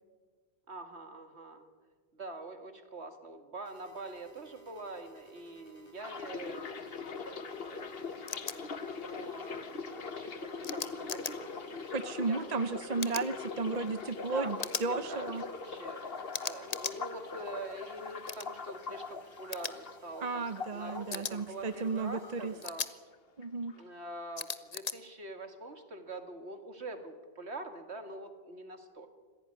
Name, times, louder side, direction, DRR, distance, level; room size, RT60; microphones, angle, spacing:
voice 1, 0.7-1.7 2.1-8.1 9.0-9.7 10.1-12.8 14.3-22.9 23.7-29.1, right 2 dB, 85° right, 7 dB, 2.5 m, -45 dB
sound 1, 3.6-22.7, right 5 dB, 90° left, 3.6 m, -57 dB
sound 2, 6.0-22.0 22.2-23.2 23.4-23.8, left 5 dB, 65° left, 1.4 m, -42 dB
sound 3, 8.3-8.5 10.6-11.3 13.0-13.3 14.6-14.9 16.3-17.0 18.3-18.5 19.5-19.7 21.1-21.3 22.6-22.9 24.4-24.9, left 5 dB, 40° left, 1.0 m, -37 dB
voice 2, 11.9-15.4 20.2-22.5 23.4-23.7, right 4 dB, 40° right, 12 dB, 0.8 m, -34 dB
26.0 x 16.5 x 9.8 m, 1.5 s
omnidirectional pair, 1.1 m